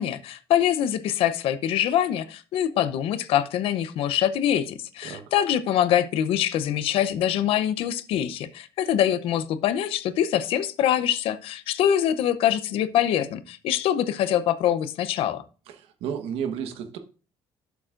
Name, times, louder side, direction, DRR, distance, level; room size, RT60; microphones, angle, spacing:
voice 1, 0.0-15.4, left 10 dB, 70° left, 0.7 m, -24 dB
voice 2, 5.0-5.3 15.7-17.0, right 8 dB, 80° right, 1.3 m, -32 dB
12.0 x 7.1 x 2.5 m
cardioid pair, 145°, 10 cm